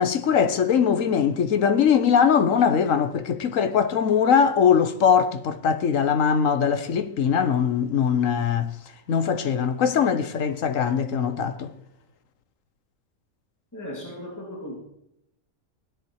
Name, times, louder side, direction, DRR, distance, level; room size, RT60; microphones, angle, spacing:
voice 1, 0.0-8.7 9.1-11.7, left 7 dB, 65° left, 1.4 m, -21 dB
voice 2, 13.7-14.8, left 1 dB, 10° left, 2.7 m, -36 dB
17.0 x 10.5 x 4.7 m
omnidirectional pair, 1.5 m